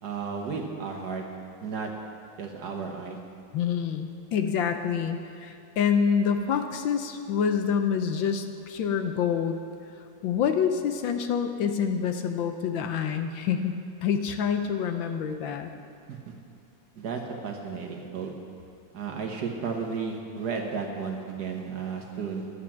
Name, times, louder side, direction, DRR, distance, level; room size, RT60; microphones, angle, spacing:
voice 1, 0.0-1.2 1.6-1.9 2.4-3.2 16.1-16.3 17.0-18.3 18.9-22.5, right 5 dB, 55° right, 2 dB, 1.4 m, -33 dB
voice 2, 3.5-9.6 10.2-13.7 14.0-15.7, left 7 dB, 70° left, 7 dB, 1.4 m, -27 dB
11.5 x 8.2 x 7.3 m, 2.5 s
omnidirectional pair, 2.3 m